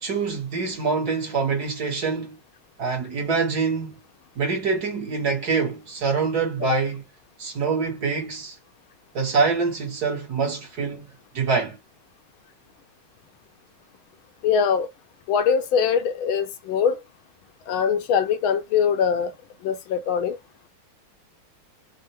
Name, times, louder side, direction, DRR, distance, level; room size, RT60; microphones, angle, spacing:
voice 1, 0.0-2.4 2.8-4.0 4.4-7.0 7.4-8.6 9.1-11.1 11.3-11.8, right 5 dB, 50° right, 1.8 m, -25 dB
voice 2, 14.4-14.9 15.3-17.0 17.7-19.3 19.6-20.4, left 7 dB, 75° left, 1.5 m, -22 dB
4.4 x 2.2 x 3.0 m
omnidirectional pair, 2.3 m